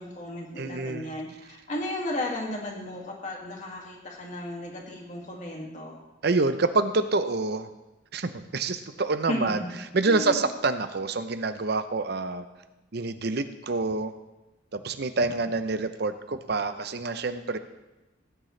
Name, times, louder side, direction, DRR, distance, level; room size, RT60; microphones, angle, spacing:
voice 1, 0.0-6.0 9.2-9.8 10.0-10.4, left 1 dB, 40° left, -1 dB, 2.2 m, -34 dB
voice 2, 0.6-1.1 6.2-7.7 8.1-9.6 9.9-12.4 12.9-14.1 14.7-17.6, right 3 dB, 60° right, 10 dB, 0.7 m, -27 dB
17.0 x 9.2 x 3.3 m, 1.0 s
head